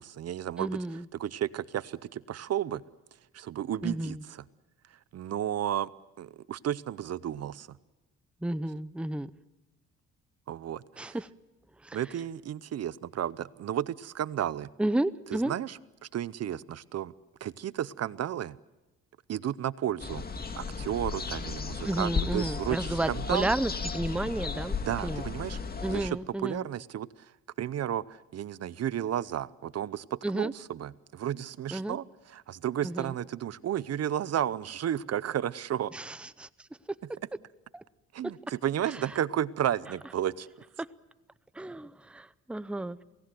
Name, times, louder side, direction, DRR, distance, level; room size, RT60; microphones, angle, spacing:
voice 1, 0.0-0.8 1.2-2.8 3.3-4.4 5.1-5.9 6.2-7.7 10.5-11.2 11.9-14.7 15.3-15.8 16.1-17.1 17.4-18.6 19.3-20.3 20.6-23.5 24.9-25.6 25.9-27.1 27.6-32.0 32.3-35.9 38.1-40.5, right 10 dB, 55° right, 18 dB, 0.7 m, -32 dB
voice 2, 0.6-1.1 3.8-4.2 8.4-9.3 11.0-11.3 11.8-12.0 14.8-15.5 21.8-24.8 25.0-25.3 25.8-26.6 30.2-30.5 31.7-32.0 32.8-33.1 35.9-36.5 37.7-37.8 38.8-39.0 41.5-43.0, right 1 dB, 5° right, 14 dB, 0.7 m, -32 dB
sound 1, 20.0-26.1, left 4 dB, 30° left, 2.0 m, -34 dB
28.5 x 18.5 x 7.7 m, 1.1 s
cardioid pair, 90°, 30 cm